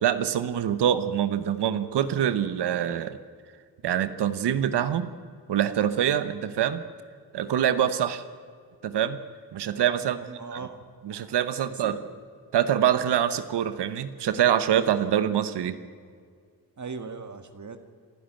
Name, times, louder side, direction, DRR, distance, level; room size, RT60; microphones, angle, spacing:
voice 1, 0.0-3.2 3.8-5.1 5.5-6.8 7.3-8.2 8.8-9.2 9.5-10.2 11.1-12.0 12.5-15.8, right 10 dB, 90° right, 12 dB, 1.0 m, -25 dB
voice 2, 10.0-10.8 11.7-12.1 16.8-17.8, right 4 dB, 45° right, 8 dB, 1.7 m, -39 dB
27.0 x 11.5 x 9.1 m, 2.1 s
cardioid pair, 70°, 39 cm